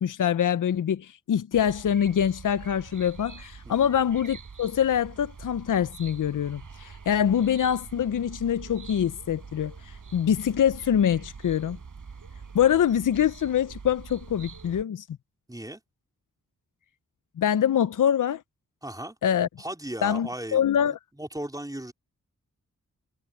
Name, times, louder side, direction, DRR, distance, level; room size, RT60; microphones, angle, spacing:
voice 1, 0.0-11.8 12.5-15.1 17.4-18.4 19.2-19.5 20.0-21.0, left 9 dB, 70° left, 0.7 m, -24 dB
sound 1, 1.5-14.8, right 5 dB, 70° right, 6.9 m, -45 dB
voice 2, 15.5-15.8 18.8-19.2 19.6-20.6 21.2-21.9, right 1 dB, 10° right, 4.1 m, -36 dB
cardioid pair, 50°, 32 cm